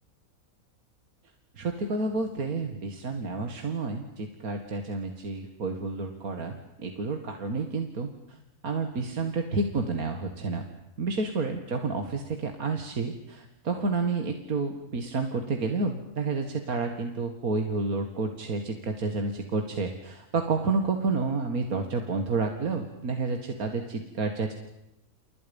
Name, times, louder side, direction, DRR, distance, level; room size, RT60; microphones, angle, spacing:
voice 1, 1.6-8.4 8.6-10.6 11.0-24.5, right 3 dB, 80° right, 5 dB, 2.5 m, -30 dB
30.0 x 29.5 x 5.4 m, 0.84 s
omnidirectional pair, 1.5 m